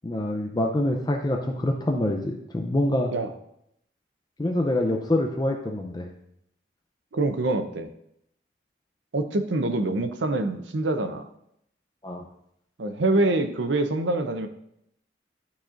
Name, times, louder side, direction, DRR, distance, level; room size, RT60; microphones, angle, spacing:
voice 1, 0.0-3.1 4.4-6.1 12.0-12.2, left 1 dB, 20° left, 3 dB, 0.5 m, -25 dB
voice 2, 7.1-7.9 9.1-11.3 12.8-14.5, right 2 dB, 85° right, 7 dB, 0.7 m, -25 dB
11.5 x 4.1 x 2.5 m, 0.75 s
head